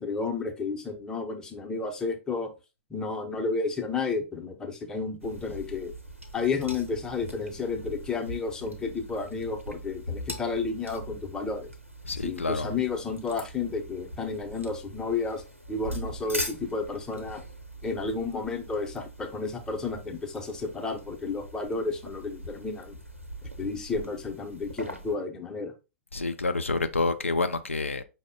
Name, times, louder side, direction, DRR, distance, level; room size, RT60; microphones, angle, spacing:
voice 1, 0.0-2.5 2.9-5.9 6.3-11.7 12.2-15.4 15.7-17.4 17.8-23.0 23.6-25.7, left 4 dB, 10° left, 0.7 m, -32 dB
sound 1, 5.2-25.1, equal, 90° right, 0.9 m, -42 dB
voice 2, 12.0-12.7 26.1-28.0, left 3 dB, 80° left, 0.4 m, -28 dB
5.3 x 2.1 x 3.6 m
figure-of-eight pair, 105°, 7 cm